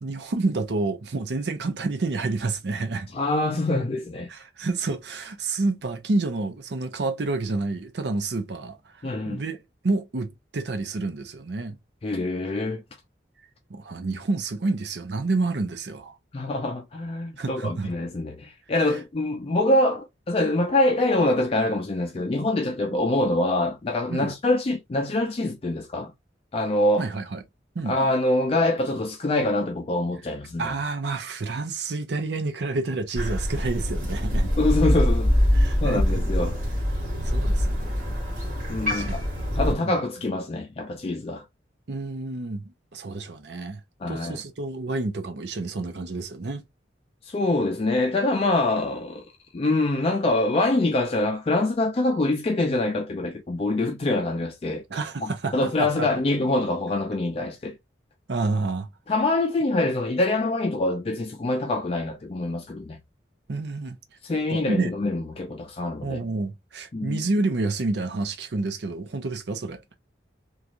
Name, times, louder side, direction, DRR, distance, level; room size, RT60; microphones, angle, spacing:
voice 1, 0.0-3.1 4.3-8.8 9.2-9.6 9.8-11.8 13.7-16.1 17.4-17.9 22.9-23.0 24.1-24.3 27.0-27.4 27.7-28.0 30.6-34.5 35.5-36.2 37.2-38.1 38.9-39.2 39.5-40.0 41.9-43.8 44.1-46.6 54.9-56.1 58.3-58.9 63.5-64.0 64.5-64.9 66.0-69.9, right 3 dB, 70° right, 0.6 m, -29 dB
voice 2, 3.1-4.3 9.0-9.4 12.0-12.8 16.3-26.1 26.5-27.1 27.9-30.7 34.6-35.3 35.8-36.6 38.7-39.2 39.6-41.5 44.0-44.4 47.2-49.2 49.5-54.8 55.2-57.7 59.1-63.0 64.2-66.2 66.9-67.2, left 2 dB, 35° left, 0.4 m, -25 dB
Crow, 33.2-39.7, equal, 45° right, 1.8 m, -24 dB
3.0 x 2.4 x 2.5 m
head